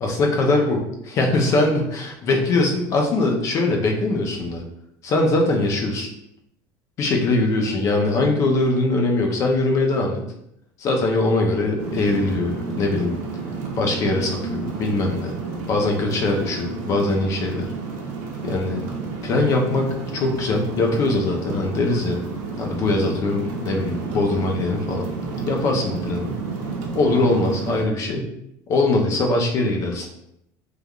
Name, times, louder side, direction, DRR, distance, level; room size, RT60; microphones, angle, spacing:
voice 1, 0.0-4.6 5.0-6.1 7.0-10.2 10.8-13.1 13.8-15.4 15.7-17.7 18.4-18.8 19.2-22.2 22.6-25.1 25.5-26.3 26.9-28.3 28.7-30.1, left 2 dB, 35° left, 1 dB, 0.5 m, -22 dB
sound 1, 11.8-27.8, right 4 dB, 90° right, 0.6 m, -31 dB
3.2 x 2.2 x 2.3 m, 0.78 s
cardioid pair, 160°, 9 cm